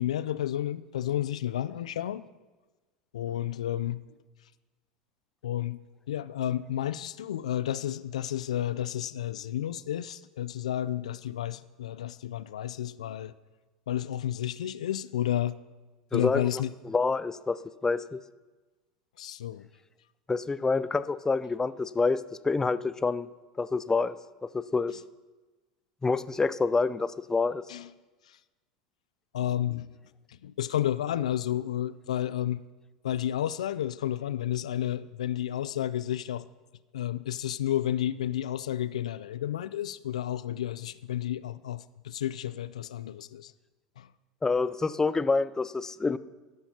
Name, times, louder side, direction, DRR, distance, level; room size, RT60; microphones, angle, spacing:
voice 1, 0.0-2.3 3.1-4.0 5.4-5.8 6.1-13.3 13.9-15.5 16.1-16.7 19.2-19.7 27.7-27.9 29.3-29.9 30.4-32.6 33.0-36.4 36.9-43.5 44.0-44.1, left 11 dB, 80° left, 16 dB, 0.4 m, -31 dB
voice 2, 16.1-17.6 17.8-18.2 20.3-23.3 23.6-24.2 24.5-25.0 26.0-27.6 44.4-46.2, left 4 dB, 15° left, 16 dB, 0.4 m, -27 dB
12.5 x 11.5 x 2.8 m, 1.2 s
hypercardioid pair, 80°, 4 cm